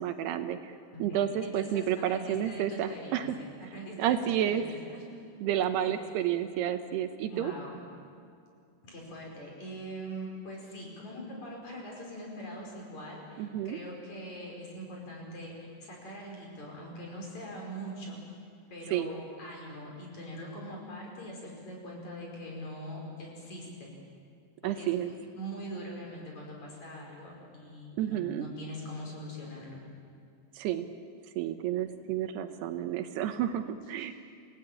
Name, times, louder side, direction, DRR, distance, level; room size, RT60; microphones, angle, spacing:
voice 1, 0.0-0.7 1.0-3.4 4.0-4.6 5.4-7.5 13.4-13.8 18.9-19.1 24.6-25.1 28.0-28.5 30.6-30.9 31.4-34.2, right 11 dB, 80° right, 8 dB, 2.9 m, -30 dB
voice 2, 0.9-5.2 5.6-6.1 7.3-7.8 8.8-18.2 18.7-23.9 24.6-29.8, equal, 45° left, -1 dB, 6.4 m, -42 dB
28.0 x 17.5 x 9.1 m, 2.4 s
omnidirectional pair, 4.8 m